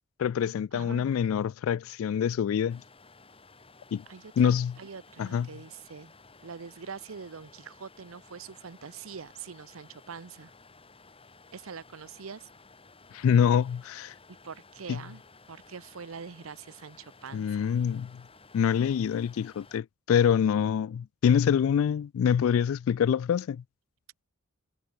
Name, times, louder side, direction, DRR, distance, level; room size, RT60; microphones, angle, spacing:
voice 1, 0.2-2.8 3.9-4.0 4.4-4.7 5.2-5.5 13.1-14.1 14.9-15.0 17.3-18.1 18.5-23.6, left 8 dB, 70° left, 0.3 m, -25 dB
voice 2, 0.7-1.1 4.1-6.1 6.4-10.5 11.5-12.5 14.4-15.2 15.5-17.7, right 6 dB, 70° right, 0.7 m, -44 dB
sound 1, 2.7-19.8, left 3 dB, 25° left, 5.5 m, -55 dB
head